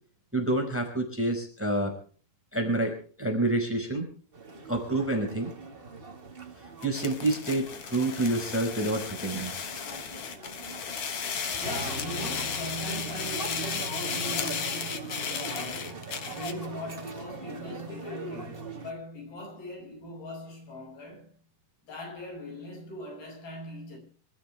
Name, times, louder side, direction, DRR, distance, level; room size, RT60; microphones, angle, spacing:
voice 1, 0.3-1.9 2.5-4.1 4.7-5.5 6.8-9.5, right 2 dB, 5° right, 4.5 m, -28 dB
sound 1, 4.3-18.9, right 3 dB, 65° right, 0.5 m, -41 dB
sound 2, 6.8-16.7, left 7 dB, 50° left, 2.1 m, -35 dB
voice 2, 11.3-21.3 21.8-24.0, equal, 75° left, 8.2 m, -40 dB
26.5 x 13.5 x 3.4 m
omnidirectional pair, 4.3 m